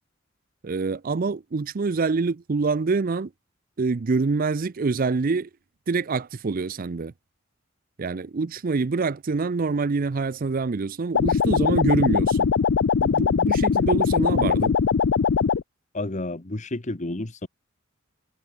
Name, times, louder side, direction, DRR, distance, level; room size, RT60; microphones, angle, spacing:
voice 1, 0.6-3.3 3.8-5.5 5.9-7.1 8.0-12.5 13.0-14.8, right 4 dB, 40° right, 0.5 m, -26 dB
sound 1, 11.1-15.6, left 6 dB, 60° left, 0.4 m, -21 dB
voice 2, 15.9-17.5, left 2 dB, 35° left, 1.2 m, -30 dB
head